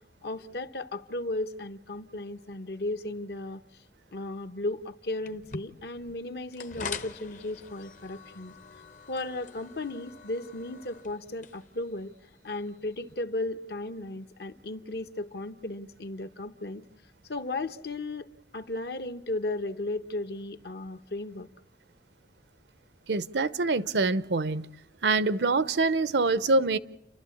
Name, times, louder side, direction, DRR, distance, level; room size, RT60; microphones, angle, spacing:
voice 1, 0.2-3.6 4.1-8.5 9.1-12.1 12.4-16.8 17.3-18.3 18.5-21.5, left 2 dB, 70° left, 1.0 m, -35 dB
sound 1, 5.2-13.1, left 5 dB, 45° left, 0.8 m, -44 dB
voice 2, 23.1-24.7 25.0-26.8, right 3 dB, 85° right, 0.7 m, -25 dB
30.0 x 12.0 x 8.5 m
head